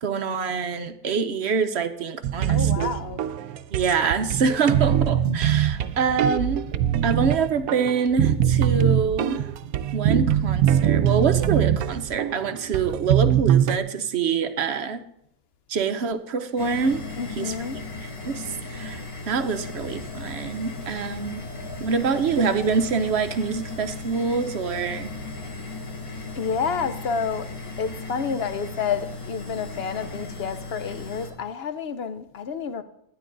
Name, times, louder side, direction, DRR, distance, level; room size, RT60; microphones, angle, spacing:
voice 1, 0.0-2.9 3.7-6.6 7.0-9.4 9.9-15.0 15.7-17.0 17.3-17.5 18.0-21.4 21.8-25.1, right 5 dB, 55° right, 0.9 m, -25 dB
sound 1, 2.2-13.8, right 10 dB, 80° right, 1.0 m, -22 dB
voice 2, 2.5-3.2 17.2-17.8 26.3-27.5 27.8-32.8, left 6 dB, 55° left, 0.7 m, -29 dB
sound 2, 16.6-31.3, left 3 dB, 80° left, 2.4 m, -36 dB
12.0 x 9.9 x 3.8 m
omnidirectional pair, 1.5 m